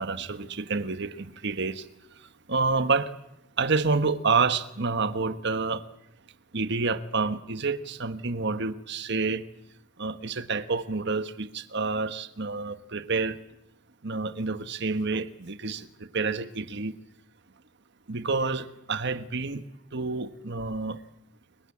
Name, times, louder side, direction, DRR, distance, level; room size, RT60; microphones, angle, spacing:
voice 1, 0.0-1.8 2.5-3.1 3.6-5.8 6.5-9.4 10.0-13.3 14.0-15.9 16.1-16.9 18.1-19.6 19.9-21.0, right 4 dB, 60° right, 11 dB, 1.4 m, -28 dB
29.5 x 23.0 x 8.6 m, 0.84 s
head